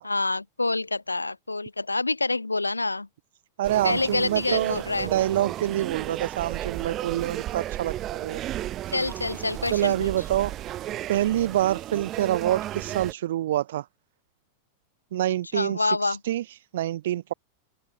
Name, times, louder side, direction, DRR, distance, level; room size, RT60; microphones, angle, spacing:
voice 1, 0.0-3.1 3.8-5.1 8.9-10.1 15.5-16.2, left 3 dB, 80° left, 2.8 m, -27 dB
sound 1, 3.6-13.1, right 13 dB, 30° right, 1.5 m, -34 dB
voice 2, 3.6-8.4 9.7-10.5 11.1-13.9 15.1-17.3, right 13 dB, 60° right, 2.7 m, -26 dB
open air
figure-of-eight pair, 90°, 0 cm